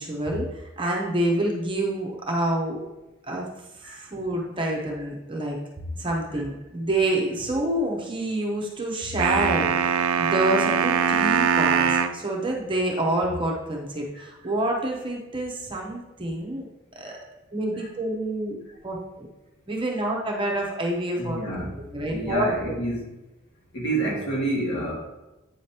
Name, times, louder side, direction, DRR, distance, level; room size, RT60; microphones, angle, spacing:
voice 1, 0.0-2.8 3.3-3.5 3.8-5.6 6.0-16.7 17.0-17.2 17.5-19.3 19.7-21.4 21.9-22.5, right 1 dB, 25° right, -1 dB, 0.8 m, -27 dB
sound 1, 9.2-12.2, right 6 dB, 85° right, 0.4 m, -22 dB
voice 2, 21.1-21.7 22.1-23.1 23.7-24.9, right 2 dB, 55° left, -4 dB, 1.8 m, -28 dB
8.4 x 5.1 x 2.8 m, 1.0 s
head